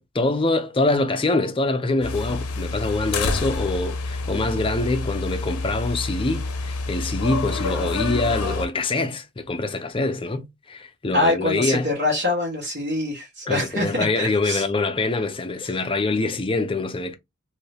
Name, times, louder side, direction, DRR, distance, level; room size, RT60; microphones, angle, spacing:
voice 1, 0.0-11.9 13.5-17.1, left 2 dB, 25° left, 0.5 m, -24 dB
sound 1, 2.0-8.7, left 3 dB, 90° left, 0.7 m, -28 dB
voice 2, 11.1-14.6, left 1 dB, 45° right, 1.1 m, -24 dB
2.7 x 2.7 x 3.3 m
head